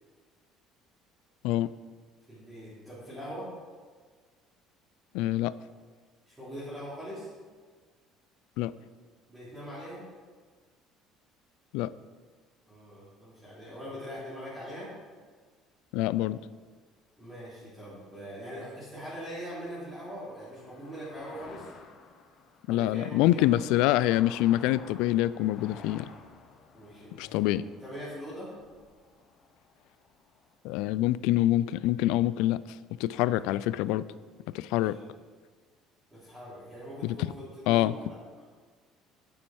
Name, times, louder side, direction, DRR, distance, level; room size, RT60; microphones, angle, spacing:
voice 1, 2.3-3.5 6.3-7.3 9.3-10.0 12.7-14.9 17.2-21.7 22.7-23.7 26.7-27.5 27.8-28.5 33.1-33.2 34.7-34.8 36.1-38.2, equal, 10° right, -12 dB, 3.1 m, -42 dB
voice 2, 5.1-5.5 8.6-8.7 11.7-11.9 15.9-16.4 22.7-26.1 27.2-27.6 30.6-34.1 34.5-35.0 37.0-37.2 37.7-37.9, left 15 dB, 80° left, 17 dB, 0.3 m, -26 dB
sound 1, 18.9-30.6, left 5 dB, 40° left, 0.8 m, -53 dB
9.6 x 7.3 x 4.7 m, 1.5 s
cardioid pair, 170°, 0 cm